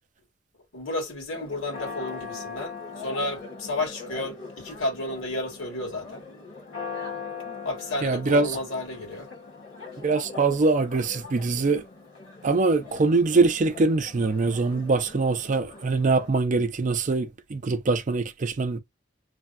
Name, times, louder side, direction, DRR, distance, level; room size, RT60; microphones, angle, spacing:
voice 1, 0.7-6.3 7.6-9.3, left 2 dB, 85° left, 1.8 m, -32 dB
Church bell, 1.3-16.3, left 4 dB, 65° left, 1.5 m, -41 dB
voice 2, 8.0-8.5 10.0-11.8 12.4-18.8, right 3 dB, 40° right, 0.4 m, -23 dB
3.3 x 2.2 x 2.5 m
head